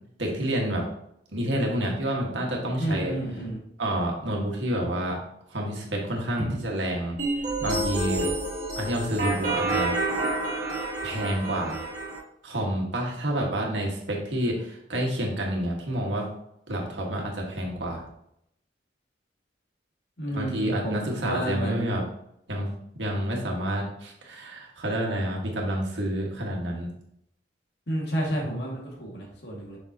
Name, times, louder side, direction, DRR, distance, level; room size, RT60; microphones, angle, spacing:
voice 1, 0.2-0.8 1.3-3.1 3.8-5.2 5.5-7.1 7.6-8.3 8.7-9.9 11.0-11.8 12.4-16.3 16.7-18.0 20.3-22.0 22.5-26.9, right 1 dB, 85° right, -1 dB, 1.7 m, -29 dB
voice 2, 2.8-3.6 6.4-6.6 20.2-21.9 27.9-29.8, right 1 dB, 65° left, -2 dB, 2.1 m, -30 dB
sound 1, 7.2-12.2, right 2 dB, 45° right, 2.2 m, -28 dB
6.4 x 5.9 x 2.9 m, 0.75 s
head